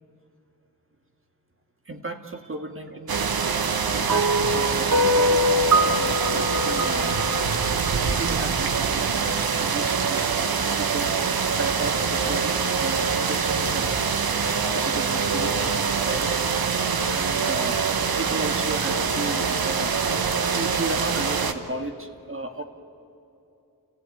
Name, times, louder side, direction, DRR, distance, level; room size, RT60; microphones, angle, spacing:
voice 1, 1.9-3.2 3.9-4.3 4.5-7.3 7.7-11.1 11.6-14.2 14.7-16.4 17.1-22.6, right 2 dB, 35° right, 5 dB, 2.0 m, -34 dB
sound 1, 3.1-21.5, right 5 dB, 85° right, 1.3 m, -24 dB
sound 2, 4.1-8.4, equal, 55° right, 1.4 m, -23 dB
29.5 x 15.5 x 9.4 m, 2.9 s
wide cardioid pair, 75°, 35 cm